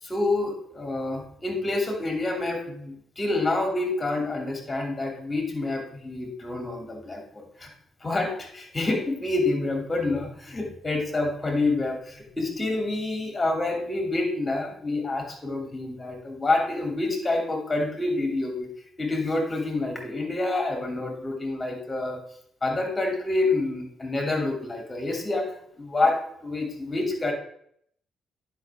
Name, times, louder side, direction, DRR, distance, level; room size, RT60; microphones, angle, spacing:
voice 1, 0.0-7.2 8.0-18.7 19.0-22.2 22.6-27.3, left 2 dB, 25° left, 2 dB, 2.8 m, -27 dB
10.0 x 5.8 x 3.6 m, 0.67 s
hypercardioid pair, 50°, 0 cm